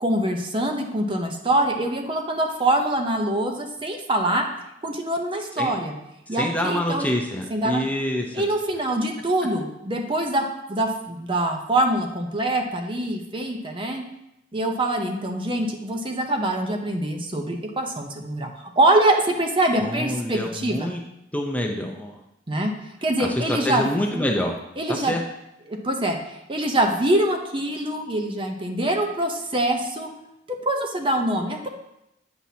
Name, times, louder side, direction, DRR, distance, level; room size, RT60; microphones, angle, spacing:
voice 1, 0.0-4.4 4.8-5.9 6.3-7.1 7.5-7.9 8.3-14.0 14.5-20.8 22.5-22.7 23.0-23.9 24.1-24.2 24.8-25.1 25.7-26.2 26.5-30.1 30.6-31.7, right 1 dB, 30° right, 3 dB, 0.7 m, -24 dB
voice 2, 6.3-8.4 19.8-21.0 21.3-22.2 23.2-24.6 24.9-25.2, left 1 dB, 10° left, 1 dB, 0.6 m, -26 dB
8.6 x 5.8 x 2.8 m, 0.84 s
head